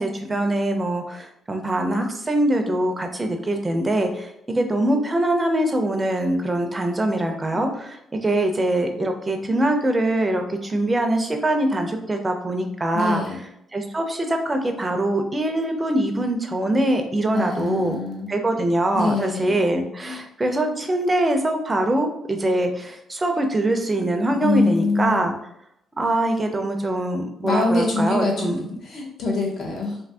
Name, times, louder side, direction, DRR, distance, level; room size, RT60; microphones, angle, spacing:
voice 1, 0.0-13.2 13.7-18.0 18.3-25.3 26.0-28.6, right 1 dB, 15° right, 4 dB, 0.5 m, -23 dB
voice 2, 12.9-13.4 17.3-18.3 18.9-19.6 24.4-25.3 27.4-28.5 28.8-30.0, left 3 dB, 60° left, -1 dB, 0.9 m, -24 dB
2.6 x 2.5 x 3.4 m, 0.76 s
cardioid pair, 135°, 0 cm